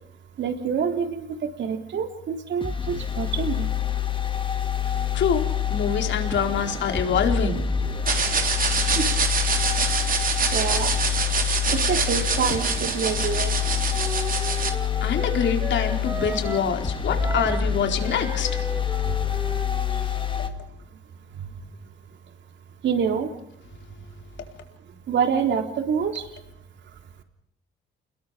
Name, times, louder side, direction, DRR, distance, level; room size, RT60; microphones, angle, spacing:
voice 1, 0.4-1.3 1.6-3.7 10.5-10.9 11.9-13.6 22.8-23.3 25.1-26.2, right 7 dB, 65° right, 5 dB, 3.5 m, -26 dB
sound 1, 2.6-20.5, left 8 dB, 25° left, 2.5 m, -27 dB
voice 2, 4.8-7.7 14.4-18.6 19.9-20.2, left 7 dB, 70° left, 4 dB, 4.4 m, -26 dB
sound 2, 8.1-14.7, right 5 dB, 45° right, 3.6 m, -25 dB
Wind instrument woodwind instrument, 13.5-16.7 17.2-20.5, right 2 dB, 15° right, 5.3 m, -36 dB
29.5 x 21.0 x 5.1 m, 0.70 s
cardioid pair, 90°, 20 cm